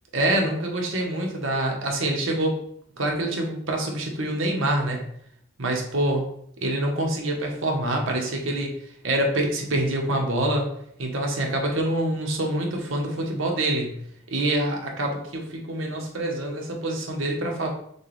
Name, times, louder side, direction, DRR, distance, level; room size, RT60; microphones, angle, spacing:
voice 1, 0.1-2.5 3.0-5.0 5.6-6.2 6.6-8.7 9.0-10.7 11.0-13.9 14.3-17.7, right 1 dB, 75° right, 1 dB, 1.1 m, -25 dB
6.4 x 2.4 x 3.3 m, 0.69 s
head